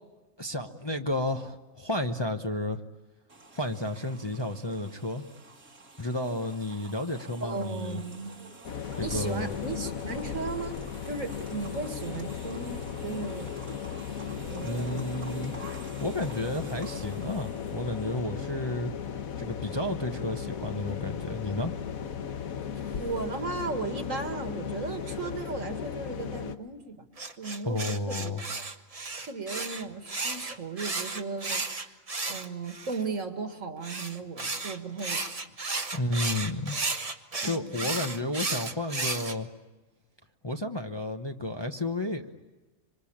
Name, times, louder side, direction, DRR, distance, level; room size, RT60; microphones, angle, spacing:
voice 1, 0.4-2.8 3.5-5.2 6.0-8.0 9.0-9.5 14.6-15.5 16.0-18.9 19.4-21.7 27.6-28.4 35.9-36.8 37.4-39.5 40.4-42.3, left 1 dB, 20° left, 4 dB, 1.0 m, -32 dB
sound 1, 3.3-18.4, right 3 dB, 85° right, 2.7 m, -49 dB
voice 2, 7.4-8.4 9.0-10.8 11.1-13.5 14.5-15.0 22.9-27.1 27.4-28.6 29.2-32.0 32.3-35.2 37.4-38.0, right 4 dB, 65° right, 7 dB, 2.4 m, -36 dB
sound 2, 8.6-26.6, left 7 dB, 80° left, 1.6 m, -36 dB
sound 3, 27.2-33.0 33.8-39.3, right 3 dB, 25° right, 1.2 m, -33 dB
26.5 x 25.5 x 8.7 m, 1.2 s
omnidirectional pair, 1.5 m